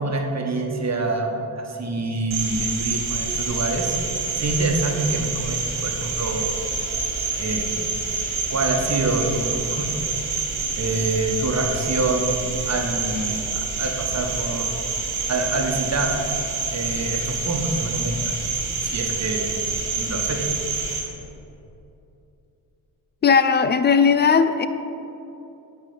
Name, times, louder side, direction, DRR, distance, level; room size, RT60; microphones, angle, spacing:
voice 1, 0.0-4.0 4.4-6.5 7.4-7.7 8.5-9.9 10.8-14.7 15.3-16.2 16.7-18.5 18.8-19.4 20.0-20.5, right 2 dB, 30° right, 2 dB, 1.3 m, -26 dB
Cricket, 2.3-21.0, right 4 dB, 80° right, 1.4 m, -27 dB
voice 2, 23.2-24.7, left 6 dB, 25° left, 11 dB, 0.3 m, -17 dB
9.1 x 3.7 x 5.6 m, 2.8 s
hypercardioid pair, 45°, 50 cm